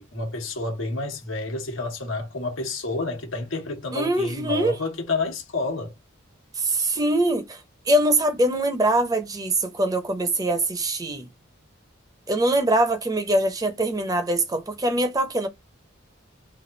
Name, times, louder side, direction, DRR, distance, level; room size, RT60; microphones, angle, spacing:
voice 1, 0.0-5.9, left 3 dB, 85° left, 1.2 m, -29 dB
voice 2, 3.9-4.8 6.5-7.6 7.9-11.3 12.3-15.5, right 1 dB, 20° right, 0.7 m, -23 dB
3.2 x 2.4 x 3.9 m
head